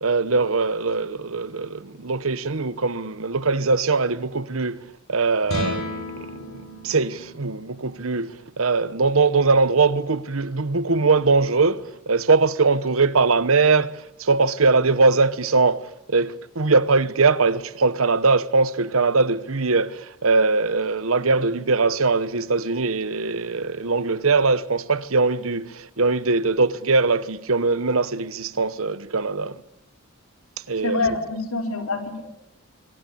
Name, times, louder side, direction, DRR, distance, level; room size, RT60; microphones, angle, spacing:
voice 1, 0.0-4.8 5.1-6.0 6.5-29.6 30.7-31.0, right 4 dB, 75° right, 1.1 m, -21 dB
sound 1, 5.4-11.8, left 1 dB, 65° left, 6.1 m, -36 dB
voice 2, 30.8-32.2, left 3 dB, 85° left, 5.0 m, -26 dB
26.0 x 23.5 x 8.6 m
head